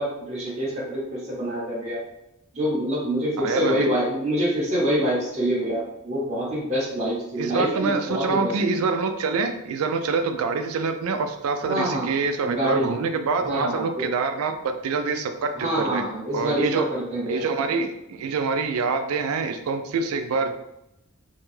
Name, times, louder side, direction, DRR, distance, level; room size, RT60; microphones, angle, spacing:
voice 1, 0.0-2.0 2.5-8.6 11.6-12.1 12.4-12.9 13.4-14.1 15.5-17.4, equal, 30° right, -7 dB, 0.7 m, -26 dB
voice 2, 3.4-3.9 7.4-16.1 16.3-16.9 17.3-20.5, right 4 dB, 85° right, 8 dB, 0.3 m, -26 dB
2.6 x 2.2 x 3.2 m, 0.86 s
head